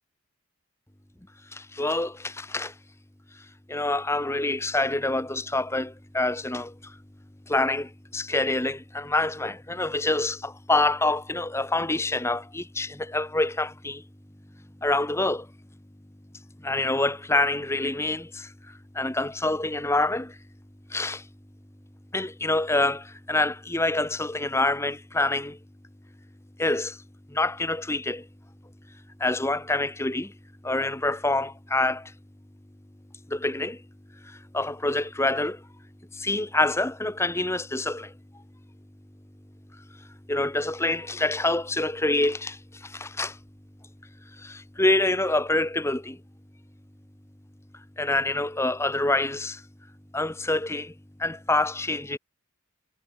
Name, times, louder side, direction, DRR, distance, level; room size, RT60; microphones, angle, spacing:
voice 1, 1.5-2.7 3.7-7.0 7.5-14.0 14.8-15.5 16.6-20.4 20.9-21.3 22.1-25.6 26.6-27.0 27.3-28.3 29.2-30.3 30.6-32.1 33.3-33.8 34.2-35.7 36.1-38.1 40.3-43.4 44.3-46.2 48.0-49.6 50.1-50.9 51.2-52.2, left 2 dB, 10° left, 1.1 m, -26 dB
head